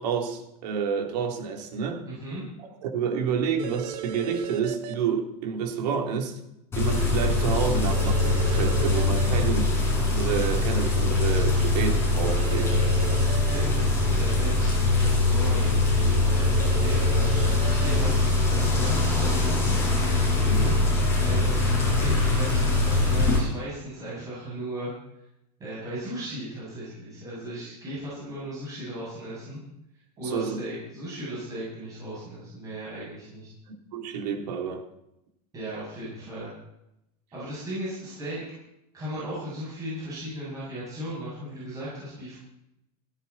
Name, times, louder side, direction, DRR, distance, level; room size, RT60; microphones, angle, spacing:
voice 1, 0.0-2.0 2.8-6.4 6.7-9.7 10.1-12.7 20.4-20.8 30.2-30.6 33.9-34.8, right 6 dB, 80° right, 2 dB, 3.5 m, -29 dB
voice 2, 2.0-2.4 9.4-9.6 12.3-19.8 21.2-24.9 25.6-29.6 30.2-33.5 35.5-36.5 37.3-38.4 38.9-42.4, right 1 dB, 15° right, -8 dB, 8.0 m, -36 dB
sound 1, 3.6-4.9 7.9-9.3 12.2-13.6 16.5-17.9, right 10 dB, 65° right, 1.8 m, -36 dB
sound 2, 6.7-23.4, left 2 dB, 10° left, 6.8 m, -23 dB
17.0 x 16.5 x 4.3 m, 0.84 s
supercardioid pair, 170°, 20 cm